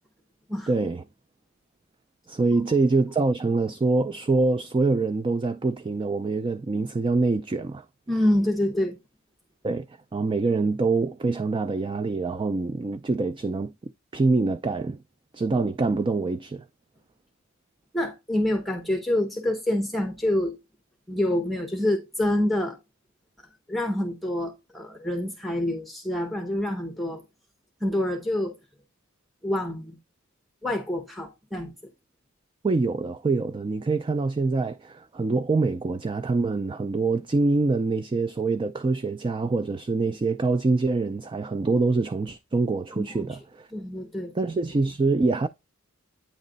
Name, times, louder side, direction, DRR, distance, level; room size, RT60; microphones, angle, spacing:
voice 1, 0.7-1.0 2.3-7.8 9.6-9.9 10.1-15.0 15.3-16.7 32.6-43.7 44.3-45.5, right 3 dB, 25° right, 0.3 m, -25 dB
voice 2, 8.1-9.0 17.9-20.6 21.1-22.8 23.7-27.2 27.8-28.5 29.4-30.0 30.6-31.7 42.9-43.4 43.7-44.3, left 1 dB, ahead, 0.9 m, -27 dB
9.1 x 3.1 x 3.9 m
head